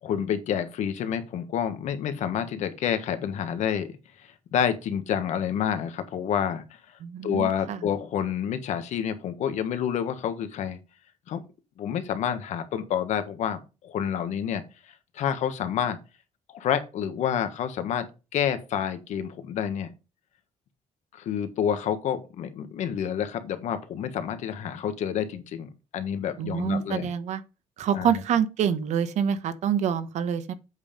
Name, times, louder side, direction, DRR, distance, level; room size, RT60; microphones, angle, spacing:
voice 1, 0.0-3.9 4.2-6.6 7.2-10.8 11.3-11.4 11.8-16.0 16.5-18.1 18.3-19.9 21.2-27.1 27.9-28.2, left 8 dB, 75° left, 1.4 m, -29 dB
voice 2, 7.0-7.8 26.4-27.4 27.8-30.5, right 8 dB, 70° right, 1.1 m, -26 dB
8.1 x 5.5 x 5.2 m
cardioid pair, 165°, 12 cm